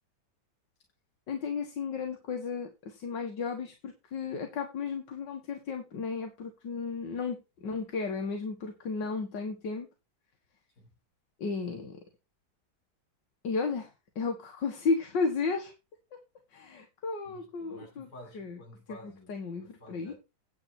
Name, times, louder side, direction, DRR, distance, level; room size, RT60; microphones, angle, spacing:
voice 1, 1.3-9.9 11.4-12.0 13.4-15.7 16.5-18.1 18.3-18.6 19.3-20.1, left 4 dB, 85° left, 2.2 m, -34 dB
voice 2, 17.2-20.1, equal, 65° left, 6.0 m, -52 dB
9.7 x 7.8 x 4.4 m
omnidirectional pair, 1.9 m